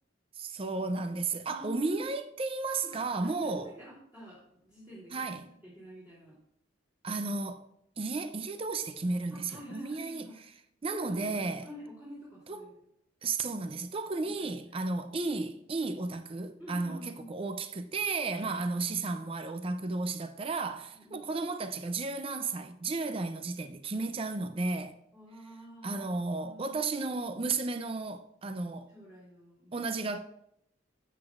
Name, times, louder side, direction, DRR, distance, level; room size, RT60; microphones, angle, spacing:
voice 1, 0.4-3.7 5.1-5.5 7.0-7.6 8.0-11.7 12.5-12.7 13.2-25.0 25.8-28.9 29.7-30.2, right 3 dB, 30° right, 0.5 m, -33 dB
voice 2, 1.5-2.0 2.9-4.4 4.6-5.2 5.6-6.4 9.3-10.4 11.0-11.3 11.6-12.7 14.2-14.3 16.6-17.4 20.9-21.3 25.1-26.1 26.4-27.1 28.9-29.8, right 1 dB, 10° right, 3.1 m, -48 dB
12.5 x 7.9 x 2.5 m
head